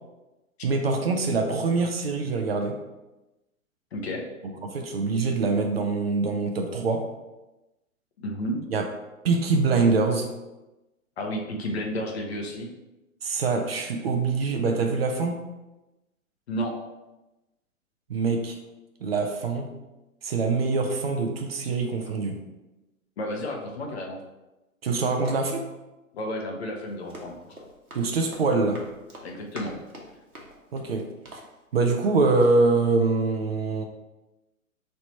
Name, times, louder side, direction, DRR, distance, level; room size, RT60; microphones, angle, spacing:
voice 1, 0.6-2.8 4.7-7.1 8.7-8.9 9.2-10.3 13.2-15.4 18.1-18.6 19.0-19.7 20.2-22.4 24.8-25.6 27.9-28.8 30.7-31.4 31.7-33.8, right 3 dB, 45° right, 4 dB, 0.5 m, -24 dB
voice 2, 3.9-4.3 8.2-8.6 11.2-12.7 16.5-16.7 23.2-24.2 26.1-27.6 29.2-29.8, equal, 50° left, 1 dB, 0.8 m, -32 dB
Run, 26.8-32.1 32.4-32.6, right 1 dB, 85° right, 1.0 m, -46 dB
3.2 x 2.9 x 4.3 m, 1.0 s
figure-of-eight pair, 115°, 42 cm